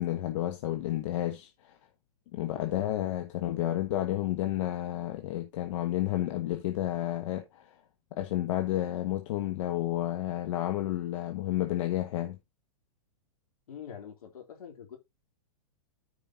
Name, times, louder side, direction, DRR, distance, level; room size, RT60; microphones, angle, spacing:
voice 1, 0.0-1.7 2.3-7.7 8.1-12.4, left 13 dB, 60° left, 1.3 m, -31 dB
voice 2, 13.7-15.0, left 8 dB, 75° left, 3.3 m, -45 dB
13.5 x 5.1 x 2.8 m
hypercardioid pair, 130°, 19 cm